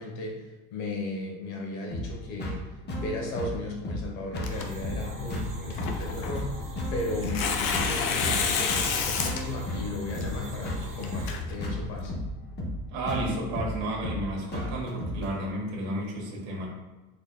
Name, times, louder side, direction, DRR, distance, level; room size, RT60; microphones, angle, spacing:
voice 1, 0.0-2.6 2.9-12.2, left 2 dB, 85° left, 0 dB, 1.2 m, -36 dB
sound 1, 1.9-15.3, equal, 25° left, 0.8 m, -35 dB
Tearing, 4.4-12.1, left 5 dB, 60° left, 0.7 m, -32 dB
sound 2, 4.4-11.4, right 3 dB, 55° right, 1.2 m, -47 dB
voice 2, 12.9-16.7, right 1 dB, 85° right, -2 dB, 1.5 m, -32 dB
4.1 x 3.7 x 2.2 m, 1.2 s
supercardioid pair, 110°, 41 cm